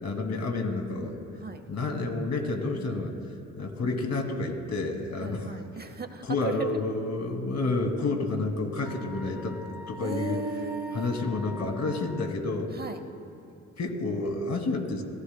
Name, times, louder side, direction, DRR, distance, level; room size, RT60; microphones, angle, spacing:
voice 1, 0.0-1.2 1.7-3.1 3.6-5.5 6.2-9.6 9.9-10.4 10.9-12.7 13.8-15.0, left 3 dB, 55° left, 4 dB, 2.4 m, -29 dB
voice 2, 5.2-6.8 10.0-11.2 12.7-13.0, right 5 dB, 30° right, 9 dB, 0.8 m, -37 dB
Wind instrument woodwind instrument, 8.9-12.3, left 1 dB, 5° right, 1.6 m, -45 dB
27.0 x 15.0 x 2.2 m, 2.7 s
supercardioid pair, 60°, 32 cm